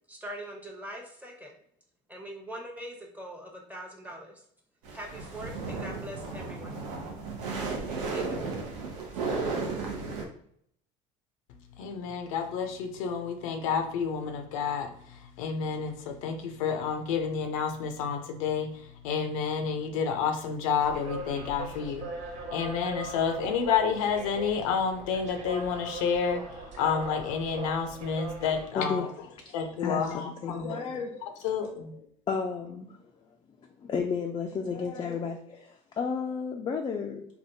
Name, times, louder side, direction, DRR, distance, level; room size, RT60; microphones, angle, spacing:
voice 1, 0.1-1.5 2.1-4.4 4.9-6.8 8.1-8.5, equal, 10° right, 1 dB, 0.8 m, -42 dB
sound 1, 4.8-10.2, right 4 dB, 85° right, 0.7 m, -34 dB
voice 2, 11.8-22.1 22.5-29.1 29.5-32.0, left 6 dB, 80° left, 5 dB, 0.5 m, -30 dB
sound 2, 20.8-28.7, right 3 dB, 45° right, 0.9 m, -40 dB
voice 3, 28.7-29.1 29.4-29.5 29.8-31.1 32.3-33.0 33.8-37.3, left 5 dB, 25° left, 2 dB, 0.4 m, -32 dB
3.4 x 2.2 x 2.6 m, 0.66 s
supercardioid pair, 90°, 17 cm